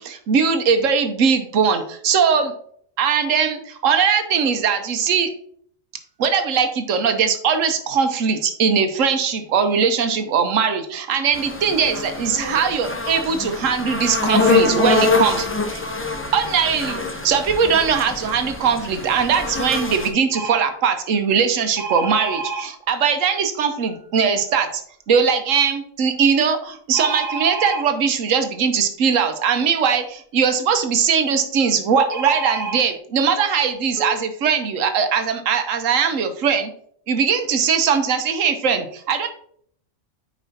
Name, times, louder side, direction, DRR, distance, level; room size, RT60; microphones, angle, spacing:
voice 1, 0.0-2.5 3.0-5.3 6.2-15.8 16.3-17.0 17.2-24.8 25.1-36.7 37.1-39.3, right 6 dB, 80° right, 8 dB, 1.2 m, -20 dB
sound 1, 11.3-20.1, left 3 dB, 20° left, 0.3 m, -24 dB
sound 2, 20.3-20.6 21.8-22.6 26.9-27.8 32.1-32.8 33.6-33.7 34.0-34.2, right 4 dB, 45° right, 0.7 m, -28 dB
9.0 x 4.9 x 2.7 m, 0.62 s
omnidirectional pair, 1.3 m